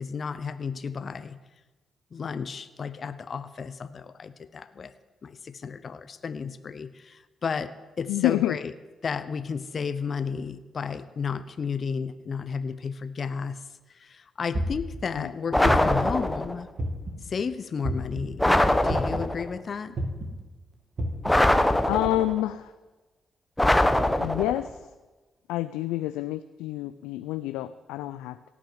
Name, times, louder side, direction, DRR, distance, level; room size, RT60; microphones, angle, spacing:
voice 1, 0.0-1.4 2.1-4.9 5.2-8.7 9.0-16.7 17.2-18.5 18.8-20.0, left 6 dB, 50° left, 13 dB, 0.7 m, -33 dB
voice 2, 8.1-8.6 15.2-15.3 21.9-22.7 24.2-24.9 25.5-28.5, left 15 dB, 80° left, 13 dB, 0.3 m, -28 dB
sound 1, 14.5-15.0 15.6-16.1 16.8-17.2 17.8-18.2 18.9-19.3 19.9-20.3 21.0-21.3, right 1 dB, 55° right, 2.6 m, -29 dB
sound 2, 15.5-16.6 18.4-19.5 21.2-22.4 23.6-24.7, left 1 dB, 10° left, 1.1 m, -22 dB
17.0 x 6.1 x 8.0 m, 1.2 s
hypercardioid pair, 45°, 0 cm